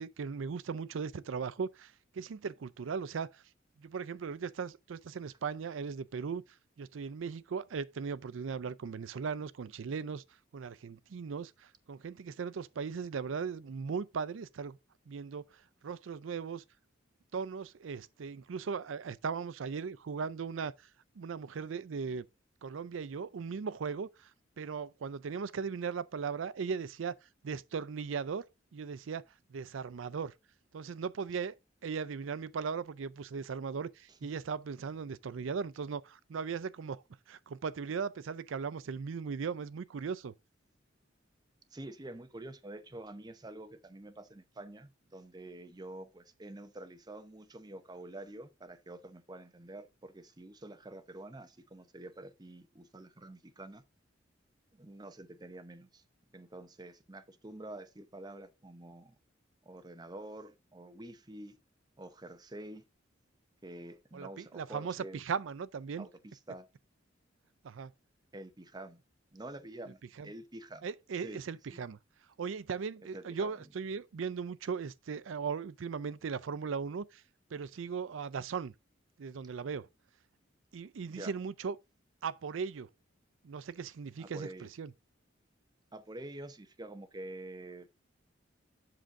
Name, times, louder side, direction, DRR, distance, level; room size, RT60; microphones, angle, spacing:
voice 1, 0.0-3.4 3.8-6.4 6.8-10.2 10.5-14.8 15.1-16.6 17.3-20.9 21.2-22.2 22.6-24.3 24.6-27.2 27.4-28.4 28.7-29.2 29.5-30.3 30.7-31.5 31.8-40.3 64.1-66.1 67.6-67.9 70.2-70.3 70.8-72.0 72.4-77.2 77.5-78.7 79.2-79.9 80.7-81.8 82.2-82.9 83.4-84.9, right 5 dB, 90° right, 0.4 m, -38 dB
voice 2, 41.7-53.8 54.7-56.0 56.3-59.2 59.7-61.6 62.0-62.8 63.6-65.2 66.0-66.7 68.3-69.0 69.3-70.9 71.2-71.8 73.1-73.7 81.1-81.4 84.2-84.7 85.9-87.9, right 1 dB, 20° right, 0.7 m, -47 dB
7.8 x 6.2 x 3.6 m
head